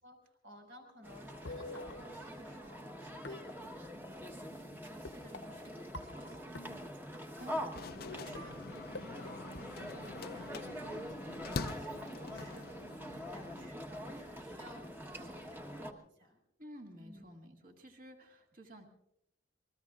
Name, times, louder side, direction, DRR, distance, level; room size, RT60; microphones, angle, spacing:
voice 1, 0.0-12.8 13.3-14.9 15.1-16.4 17.0-17.2, equal, 75° right, 3 dB, 5.0 m, -56 dB
sound 1, 1.0-15.9, equal, 10° right, 1.2 m, -45 dB
sound 2, 1.3-2.7 3.2-4.2 5.0-7.2 7.7-7.8 8.0-10.4, left 2 dB, 65° left, 0.9 m, -48 dB
voice 2, 7.4-7.7 16.6-18.8, equal, 45° right, 2 dB, 2.1 m, -52 dB
sound 3, 7.7-13.7, left 4 dB, 50° left, 0.5 m, -45 dB
27.5 x 21.5 x 2.4 m, 0.77 s
head